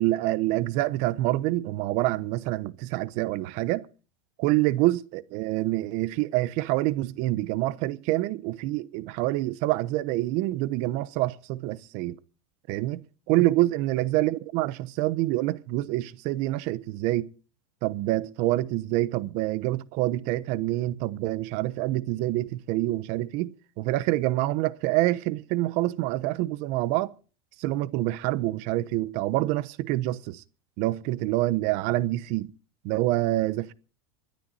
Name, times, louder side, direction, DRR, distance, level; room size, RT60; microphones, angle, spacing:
voice 1, 0.0-3.9 4.4-12.2 12.7-13.0 13.3-17.3 17.8-27.1 27.6-30.4 30.8-32.5 32.8-33.7, right 17 dB, 50° right, 0.9 m, -26 dB
21.0 x 12.0 x 4.1 m
supercardioid pair, 150°, 15 cm